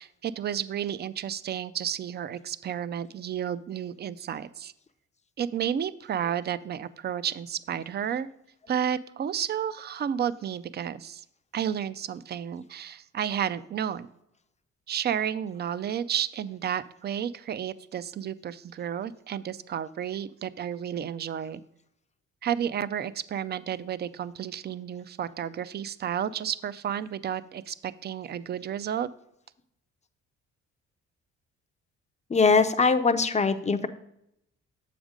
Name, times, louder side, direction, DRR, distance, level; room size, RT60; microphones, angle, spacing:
voice 1, 0.0-4.7 5.4-8.3 8.7-11.2 11.5-14.1 14.9-21.6 22.4-29.1, right 9 dB, 35° right, 16 dB, 0.4 m, -32 dB
voice 2, 32.3-33.9, left 4 dB, 25° left, 10 dB, 0.5 m, -22 dB
7.1 x 5.0 x 5.1 m, 0.78 s
cardioid pair, 90°, 30 cm